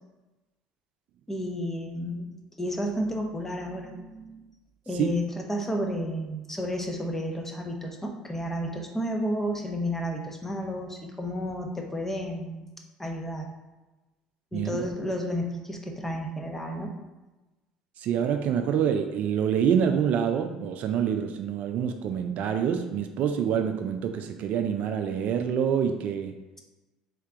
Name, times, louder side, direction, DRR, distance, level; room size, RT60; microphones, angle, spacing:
voice 1, 1.3-4.4 4.9-12.6 13.0-13.5 14.5-16.9, equal, 10° left, 2 dB, 0.9 m, -32 dB
voice 2, 14.5-14.9 18.0-26.3, right 8 dB, 55° right, 6 dB, 0.4 m, -26 dB
3.7 x 3.3 x 3.6 m, 1.1 s
hypercardioid pair, 70°, 3 cm